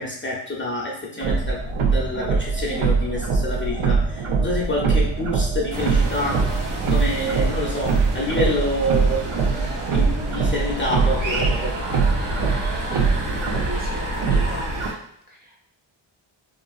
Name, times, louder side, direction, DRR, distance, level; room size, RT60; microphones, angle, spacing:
voice 1, 0.0-6.4 6.9-9.3 9.6-11.8, left 1 dB, 25° left, -4 dB, 0.5 m, -27 dB
sound 1, 1.2-14.9, right 4 dB, 90° right, 0.6 m, -23 dB
sound 2, 5.7-14.9, right 1 dB, 65° right, 1.0 m, -32 dB
voice 2, 13.7-14.6 15.3-15.7, equal, 20° right, -2 dB, 0.6 m, -37 dB
2.8 x 2.5 x 2.3 m, 0.71 s
cardioid pair, 75°, 49 cm